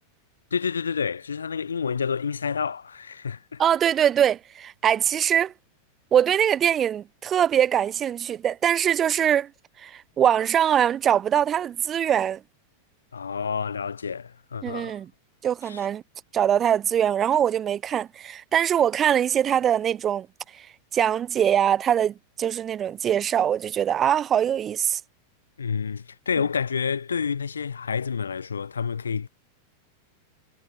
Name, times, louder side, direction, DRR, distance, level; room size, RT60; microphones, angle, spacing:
voice 1, 0.5-3.6 13.1-15.0 15.6-15.8 25.6-29.3, left 6 dB, 70° left, 7.7 m, -29 dB
voice 2, 3.6-5.5 6.1-9.5 9.8-12.4 14.6-15.1 15.4-16.0 16.3-20.3 20.5-20.7 20.9-25.0, right 9 dB, 25° right, 0.9 m, -22 dB
figure-of-eight pair, 90°, 0 cm